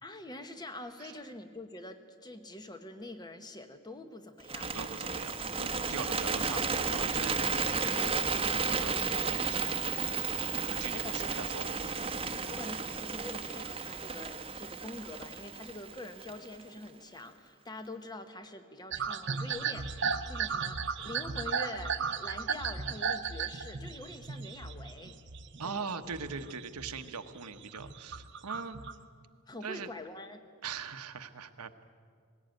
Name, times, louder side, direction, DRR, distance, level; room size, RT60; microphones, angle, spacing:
voice 1, 0.0-4.7 10.9-11.3 12.5-25.1 25.6-26.1 29.5-30.4, left 2 dB, 20° left, 8 dB, 1.1 m, -45 dB
Bird, 4.4-16.6, right 5 dB, 25° right, 1.0 m, -33 dB
voice 2, 4.7-9.8 10.5-11.7 25.6-28.8 29.6-29.9 30.6-31.7, right 5 dB, 90° right, 9 dB, 1.1 m, -41 dB
sound 1, 6.4-11.4, left 2 dB, 50° left, 4.2 m, -54 dB
sound 2, 18.9-25.7 26.0-27.1 27.5-28.9, right 6 dB, 55° right, 0.9 m, -35 dB
19.5 x 17.0 x 9.1 m, 2.1 s
head